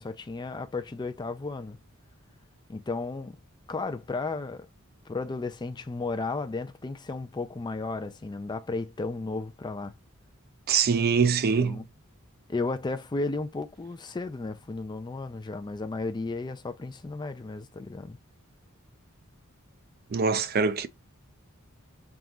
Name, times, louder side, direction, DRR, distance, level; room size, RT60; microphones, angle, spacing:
voice 1, 0.0-1.8 2.7-3.4 3.7-4.7 5.1-9.9 11.6-11.9 12.5-18.2, left 3 dB, 20° left, 0.4 m, -34 dB
voice 2, 10.7-11.8 20.1-20.9, right 5 dB, 45° right, 0.5 m, -24 dB
3.6 x 2.9 x 3.7 m
head